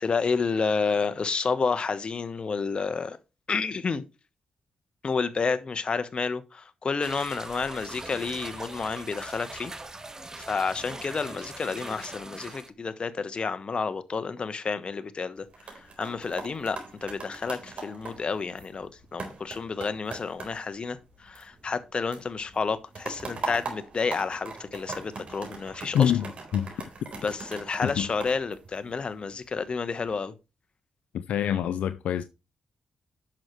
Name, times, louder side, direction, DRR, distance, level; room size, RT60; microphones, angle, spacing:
voice 1, 0.0-3.2 3.5-4.0 5.0-9.7 10.4-26.1 27.2-30.3, left 4 dB, 45° left, 1.2 m, -30 dB
sound 1, 7.0-12.7, right 2 dB, 25° right, 1.3 m, -41 dB
sound 2, 15.4-21.8 22.1-29.3 29.8-30.1, right 4 dB, 60° right, 4.0 m, -41 dB
voice 2, 25.9-26.7 27.8-28.1 31.1-32.2, left 9 dB, 80° left, 0.5 m, -26 dB
10.5 x 6.6 x 3.2 m
supercardioid pair, 50°, 2 cm